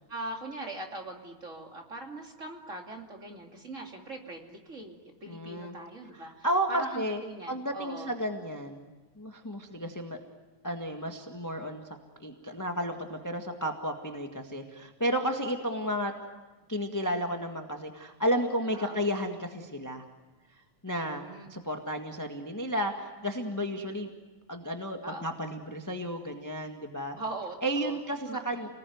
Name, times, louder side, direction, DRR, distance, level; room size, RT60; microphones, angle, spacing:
voice 1, 0.1-8.1 18.7-19.0 20.9-21.6 25.0-25.4 27.2-28.0 28.3-28.7, right 2 dB, 25° right, 2 dB, 2.7 m, -41 dB
voice 2, 5.3-5.7 6.2-7.2 7.5-8.9 9.2-10.2 10.6-11.8 12.2-16.1 16.7-20.0 20.8-21.2 21.5-24.1 24.5-27.2 27.6-28.7, equal, 10° left, 3 dB, 1.0 m, -32 dB
30.0 x 20.0 x 9.5 m, 1.2 s
omnidirectional pair, 3.3 m